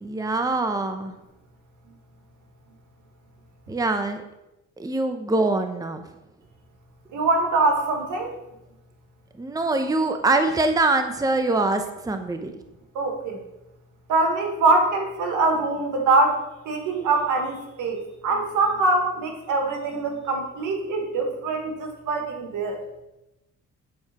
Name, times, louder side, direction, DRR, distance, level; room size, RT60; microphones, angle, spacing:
voice 1, 0.0-1.1 3.7-4.2 4.8-6.0 9.4-12.5, right 2 dB, 10° right, 7 dB, 0.8 m, -24 dB
voice 2, 7.1-8.3 12.9-13.4 14.1-22.8, right 3 dB, 80° right, 2 dB, 1.8 m, -23 dB
8.7 x 4.4 x 5.9 m, 0.94 s
cardioid pair, 90°, 30 cm